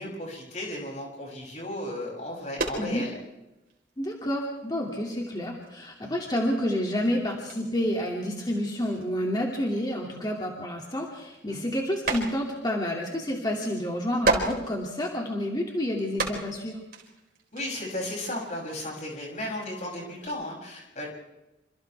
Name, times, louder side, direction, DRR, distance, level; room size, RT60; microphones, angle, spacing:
voice 1, 0.0-3.1 6.0-6.1 11.5-11.7 17.5-21.1, left 1 dB, 40° left, -2 dB, 7.3 m, -35 dB
sound 1, 2.6-3.2 3.5-5.1 5.6-5.8 6.1-6.3 6.6-6.7 6.9-10.9 11.3-12.7 13.0-13.1 13.9-15.5 16.0-20.3, right 3 dB, 50° right, 4.3 m, -34 dB
voice 2, 4.0-16.8, left 1 dB, 20° left, -1 dB, 2.5 m, -29 dB
27.5 x 27.0 x 3.5 m, 0.98 s
head